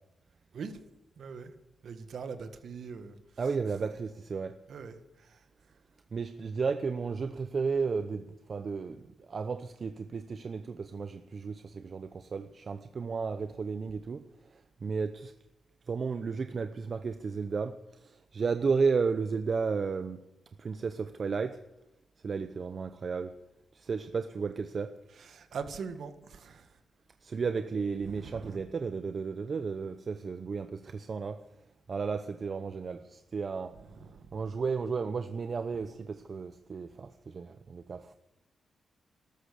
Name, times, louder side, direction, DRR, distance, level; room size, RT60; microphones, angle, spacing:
voice 1, 1.2-1.5 1.8-3.8 4.7-5.4 25.1-26.7 28.1-28.6 33.7-34.3, right 5 dB, 70° right, 1.7 m, -42 dB
voice 2, 3.4-4.6 6.1-9.0 9.3-14.2 14.8-15.3 15.9-20.3 20.6-21.6 22.2-23.3 23.7-25.0 27.2-31.4 31.9-33.8 34.3-38.1, right 5 dB, 50° right, 0.8 m, -33 dB
13.0 x 13.0 x 8.5 m
cardioid pair, 65°, 0 cm